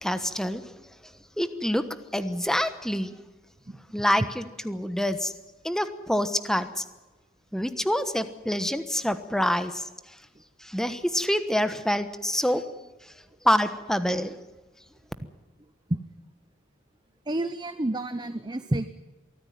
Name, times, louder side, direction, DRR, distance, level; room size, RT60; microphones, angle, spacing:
voice 1, 0.0-0.6 1.4-1.8 2.1-3.1 3.9-5.3 5.6-6.8 7.5-9.8 10.6-12.6 13.4-14.3, equal, ahead, 10 dB, 1.2 m, -26 dB
voice 2, 17.3-18.9, right 1 dB, 20° right, 11 dB, 0.7 m, -29 dB
23.5 x 14.5 x 9.3 m, 1.1 s
head